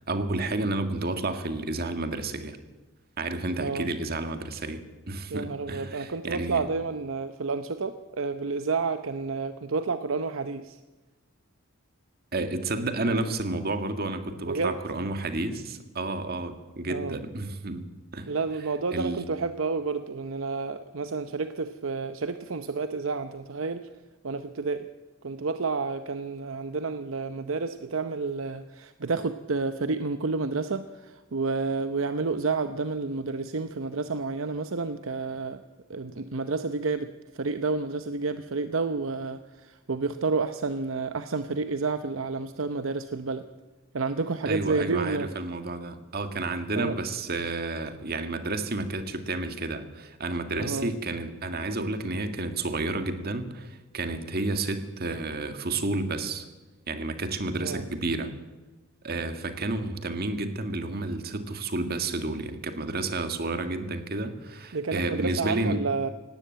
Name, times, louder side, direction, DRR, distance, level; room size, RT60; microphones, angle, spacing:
voice 1, 0.0-2.6 3.2-6.6 12.3-17.9 18.1-18.3 18.9-19.2 44.5-56.5 56.9-58.3 59.0-65.8, right 2 dB, 50° right, 8 dB, 1.9 m, -31 dB
voice 2, 3.6-3.9 5.3-10.8 13.1-13.2 14.5-14.7 16.9-17.2 18.3-23.9 24.2-24.9 25.2-35.6 35.9-43.5 43.9-45.3 46.8-46.9 50.6-50.9 57.6-57.9 64.7-66.1, right 4 dB, 75° right, 10 dB, 0.8 m, -30 dB
18.0 x 17.5 x 9.0 m, 1.2 s
head